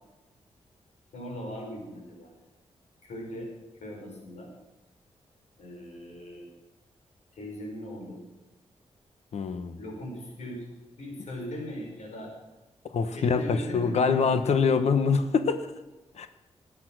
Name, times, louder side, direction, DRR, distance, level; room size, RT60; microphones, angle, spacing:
voice 1, 1.1-2.3 3.0-3.5 3.8-4.5 5.6-6.5 7.3-8.2 9.8-10.7 11.0-12.3 13.1-14.3, equal, 85° left, 0 dB, 4.9 m, -39 dB
voice 2, 9.3-9.8 12.9-15.7 16.2-16.3, left 5 dB, 70° left, 9 dB, 1.2 m, -24 dB
19.5 x 8.6 x 6.2 m, 1.1 s
wide cardioid pair, 110°, 11 cm